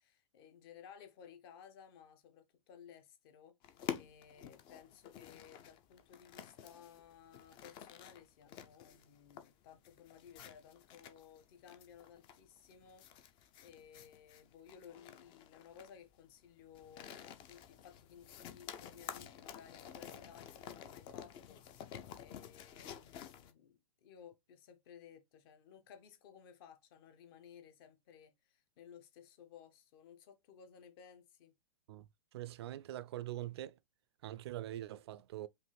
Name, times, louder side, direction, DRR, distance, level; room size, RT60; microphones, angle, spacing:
voice 1, 0.0-31.5, left 8 dB, 40° left, 1.0 m, -58 dB
sound 1, 3.6-23.5, left 9 dB, 25° left, 0.5 m, -50 dB
voice 2, 32.3-33.7 34.2-35.5, right 13 dB, 50° right, 0.4 m, -43 dB
5.1 x 2.6 x 3.3 m
figure-of-eight pair, 110°, 18 cm